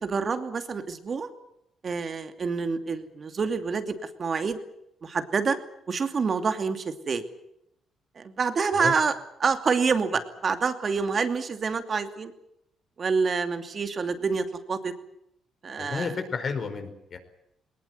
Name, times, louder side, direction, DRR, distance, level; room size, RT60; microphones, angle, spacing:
voice 1, 0.0-1.3 1.8-4.6 5.0-5.6 5.9-7.2 8.2-9.1 9.4-12.3 13.0-14.9 15.6-16.1, right 5 dB, 45° right, 8 dB, 2.6 m, -27 dB
voice 2, 15.8-17.2, left 5 dB, 45° left, 7 dB, 4.9 m, -31 dB
20.5 x 19.5 x 9.5 m, 0.79 s
cardioid pair, 90°, 0 cm